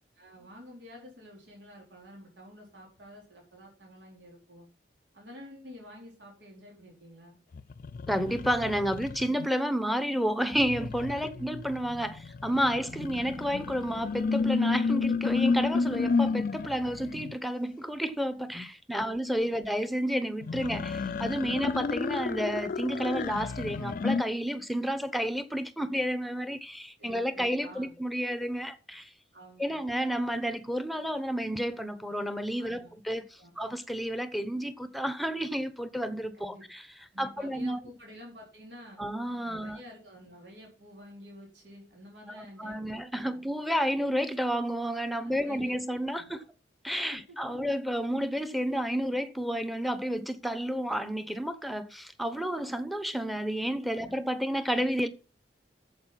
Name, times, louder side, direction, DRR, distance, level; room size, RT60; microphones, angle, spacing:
voice 1, 0.2-4.7 5.1-7.4 11.2-11.5 19.0-19.6 27.0-27.9 29.3-29.8 32.6-32.9 33.4-33.5 36.3-36.6 37.1-39.0 39.4-43.4 45.2-46.4 47.1-47.6 53.9-54.2, equal, 90° right, 4.2 m, -50 dB
sound 1, 7.5-9.5 10.5-17.3 20.4-24.2, left 4 dB, 50° left, 0.4 m, -31 dB
voice 2, 8.1-29.1 29.6-33.2 33.6-36.8 37.2-37.8 39.0-39.8 42.3-46.4 46.8-55.1, equal, ahead, 0.8 m, -31 dB
8.7 x 7.3 x 5.7 m
head